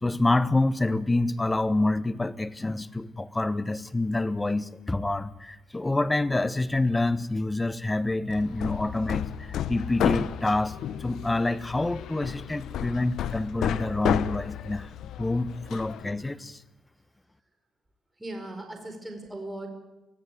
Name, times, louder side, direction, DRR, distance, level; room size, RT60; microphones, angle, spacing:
voice 1, 0.0-10.7 11.0-14.9 15.2-16.6, left 2 dB, 15° left, 14 dB, 1.1 m, -27 dB
Hammer, 8.3-16.1, left 10 dB, 75° left, 0.8 m, -32 dB
voice 2, 18.2-19.7, right 1 dB, 10° right, 4 dB, 4.9 m, -38 dB
23.5 x 16.0 x 9.3 m, 1.0 s
cardioid pair, 90°, 0 cm